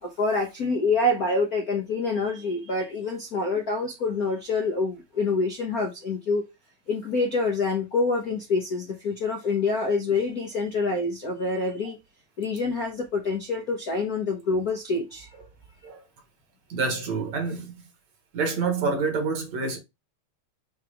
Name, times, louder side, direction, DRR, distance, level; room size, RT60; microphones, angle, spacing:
voice 1, 0.0-6.4 6.9-12.0 12.4-15.3, left 3 dB, 65° left, 0.8 m, -26 dB
voice 2, 16.7-17.7 18.3-19.8, right 4 dB, 60° right, 2.5 m, -27 dB
6.6 x 3.2 x 4.9 m
omnidirectional pair, 3.6 m